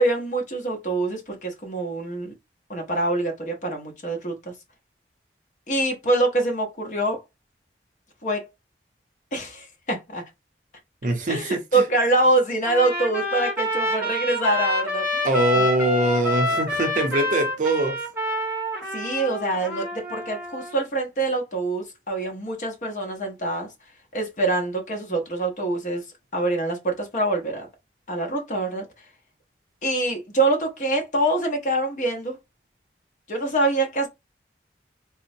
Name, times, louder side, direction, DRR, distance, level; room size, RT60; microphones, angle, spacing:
voice 1, 0.0-2.3 2.7-4.3 5.7-7.2 8.2-8.5 9.3-10.2 11.3-15.3 18.9-23.7 24.1-26.0 26.3-27.7 28.1-28.8 29.8-32.4 33.3-34.1, right 2 dB, 45° left, 0.8 m, -25 dB
voice 2, 11.0-11.8 15.2-18.0, right 1 dB, 45° right, 0.6 m, -23 dB
Trumpet, 12.6-20.8, left 1 dB, 10° right, 0.8 m, -27 dB
3.7 x 2.0 x 2.6 m
head